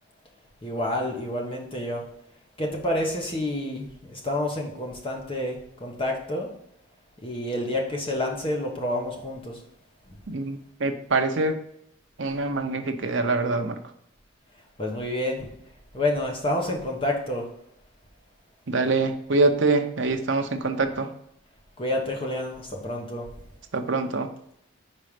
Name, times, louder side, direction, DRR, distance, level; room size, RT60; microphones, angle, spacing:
voice 1, 0.6-2.0 2.6-6.5 7.2-9.6 14.8-15.5 15.9-17.5 21.8-23.3, left 1 dB, 25° left, 0 dB, 1.0 m, -29 dB
voice 2, 10.3-11.6 12.2-13.8 18.7-21.1 23.7-24.3, right 3 dB, 60° right, 5 dB, 0.7 m, -24 dB
5.3 x 4.2 x 4.9 m, 0.75 s
head